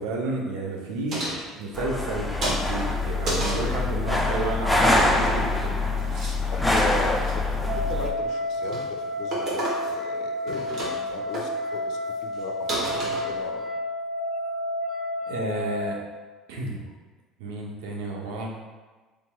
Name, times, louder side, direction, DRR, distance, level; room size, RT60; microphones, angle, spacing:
voice 1, 0.0-5.8 15.2-16.0 16.5-16.9 17.4-18.5, right 2 dB, 80° right, -1 dB, 0.5 m, -31 dB
sound 1, 1.1-2.1 2.4-3.7 5.0-5.7 6.0-6.4 6.6-7.3 7.8-8.2 8.5-8.9 9.3-10.1 10.3-11.1 11.3-11.5 12.0-12.1 12.3-12.4 12.7-13.6, right 1 dB, 55° right, 1.0 m, -31 dB
sound 2, 1.7-8.1, left 2 dB, 5° left, 0.4 m, -24 dB
voice 2, 6.5-13.7, left 4 dB, 65° left, 4 dB, 0.4 m, -37 dB
sound 3, 7.7-15.9, left 1 dB, 20° right, 0.8 m, -30 dB
3.2 x 3.0 x 2.2 m, 1.3 s
hypercardioid pair, 75°, 0 cm